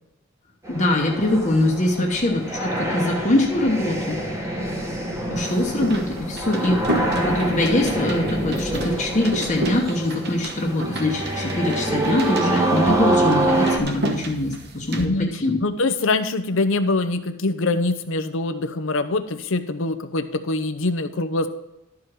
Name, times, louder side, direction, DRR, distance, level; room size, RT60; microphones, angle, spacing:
sound 1, 0.6-13.8, right 2 dB, 15° right, 1.5 m, -26 dB
voice 1, 0.7-4.6 5.3-6.8 7.2-15.6, left 1 dB, 35° left, -1 dB, 1.1 m, -23 dB
sound 2, 5.4-15.1, right 2 dB, 50° right, 1.1 m, -32 dB
voice 2, 15.0-21.5, left 2 dB, 65° left, 9 dB, 0.7 m, -24 dB
12.5 x 4.9 x 6.0 m, 0.91 s
head